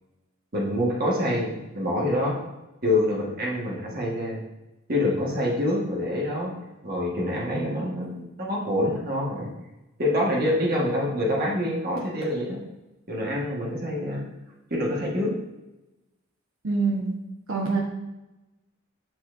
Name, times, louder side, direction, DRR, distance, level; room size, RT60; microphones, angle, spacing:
voice 1, 0.5-2.4 2.8-4.4 4.9-6.5 6.8-9.5 10.0-12.6 13.1-14.2 14.7-15.3, left 1 dB, 45° right, -3 dB, 1.4 m, -26 dB
voice 2, 16.6-17.1 17.5-17.8, right 4 dB, 85° right, -1 dB, 1.1 m, -24 dB
9.1 x 4.3 x 2.6 m, 1.0 s
head